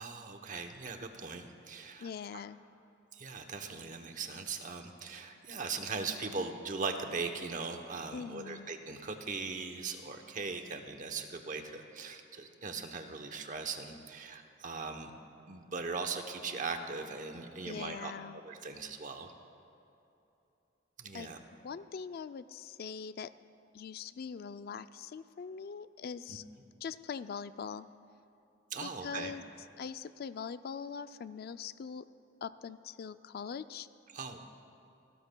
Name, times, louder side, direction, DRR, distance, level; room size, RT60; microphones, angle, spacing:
voice 1, 0.0-2.4 3.1-15.1 15.5-19.3 21.0-21.4 26.3-26.4 28.7-29.3 34.1-34.4, right 4 dB, 40° right, 6 dB, 0.8 m, -40 dB
voice 2, 2.0-2.6 8.1-8.7 17.7-18.4 21.1-21.3 21.6-23.3 23.7-26.4 26.8-27.9 28.8-29.4 29.8-32.1 32.4-33.9, left 6 dB, 50° left, 14 dB, 0.3 m, -42 dB
27.5 x 13.5 x 2.2 m, 2.9 s
head